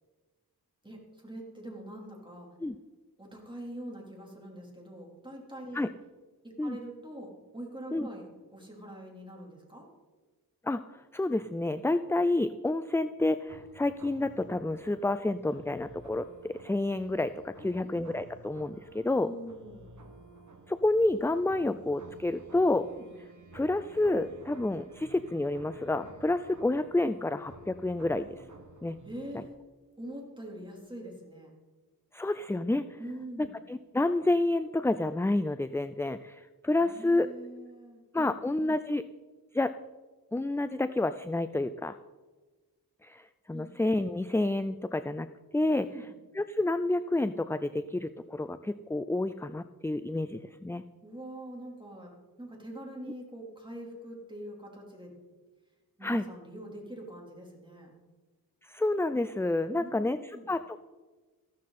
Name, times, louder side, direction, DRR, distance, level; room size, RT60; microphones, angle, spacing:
voice 1, 0.8-2.5 3.2-5.8 6.4-9.9 17.6-17.9 19.2-19.9 22.8-23.1 29.0-29.6 30.0-31.5 33.0-33.5 36.8-38.4 43.5-43.7 45.8-46.1 51.0-52.1 52.4-55.1 56.0-57.9 59.7-60.5, right 1 dB, 10° right, -2 dB, 3.7 m, -44 dB
voice 2, 10.6-19.3 20.7-22.9 23.5-28.4 28.8-29.0 32.1-32.9 33.4-37.3 38.1-39.1 39.5-39.7 40.3-42.0 43.0-45.3 45.5-45.9 46.3-50.8 56.0-56.2 58.7-60.9, left 2 dB, 5° left, 12 dB, 0.3 m, -29 dB
sound 1, 13.5-29.5, right 2 dB, 50° right, 1.8 m, -52 dB
14.5 x 12.5 x 4.3 m, 1.3 s
wide cardioid pair, 60°, 37 cm